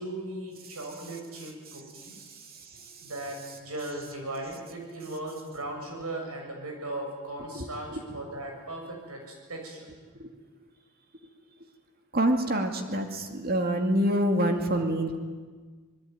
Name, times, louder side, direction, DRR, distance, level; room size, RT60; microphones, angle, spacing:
voice 1, 0.0-2.3 2.7-9.9, right 1 dB, 90° right, 2 dB, 7.4 m, -38 dB
voice 2, 7.6-8.0 10.2-10.3 12.1-15.2, right 1 dB, 45° right, 5 dB, 2.4 m, -26 dB
26.0 x 20.5 x 9.5 m, 1.5 s
head